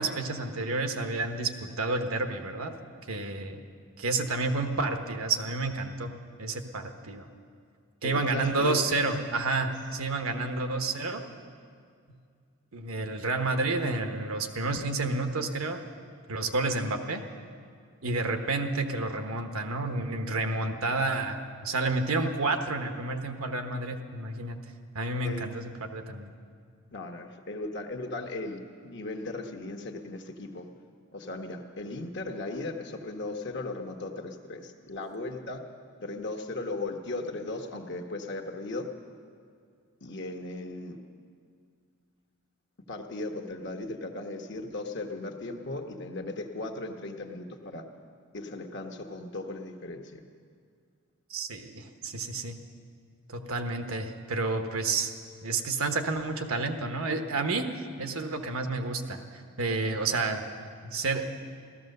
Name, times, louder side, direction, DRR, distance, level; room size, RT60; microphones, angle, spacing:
voice 1, 0.0-2.7 3.1-3.6 4.0-6.1 6.4-7.3 8.0-11.2 12.7-15.8 16.3-17.2 18.0-24.6 24.9-26.3 51.3-52.6 53.3-55.1 55.4-60.4 60.8-61.2, right 3 dB, 70° right, 6 dB, 1.1 m, -30 dB
voice 2, 8.0-9.0 10.3-10.5 25.2-25.5 26.9-30.7 31.1-35.6 36.0-38.9 40.0-41.0 42.9-47.8 48.3-50.2, left 2 dB, 50° left, 4 dB, 1.2 m, -37 dB
15.5 x 13.5 x 6.6 m, 2.2 s
head